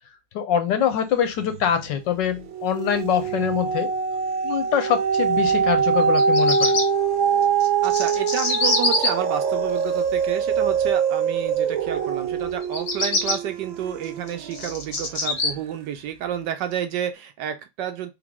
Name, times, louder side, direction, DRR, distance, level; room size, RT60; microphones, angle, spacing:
voice 1, 0.3-3.9 4.4-6.8, left 9 dB, 70° left, 1.3 m, -24 dB
sound 1, 1.5-2.0 2.4-14.8 15.4-15.5, right 6 dB, 85° right, 1.4 m, -23 dB
Bird vocalization bird call bird song, 6.0-6.8 7.6-9.1 12.6-13.4 14.0-15.5, left 2 dB, 40° left, 1.2 m, -24 dB
voice 2, 7.8-18.1, right 9 dB, 70° right, 1.2 m, -30 dB
3.7 x 3.5 x 3.5 m
omnidirectional pair, 2.1 m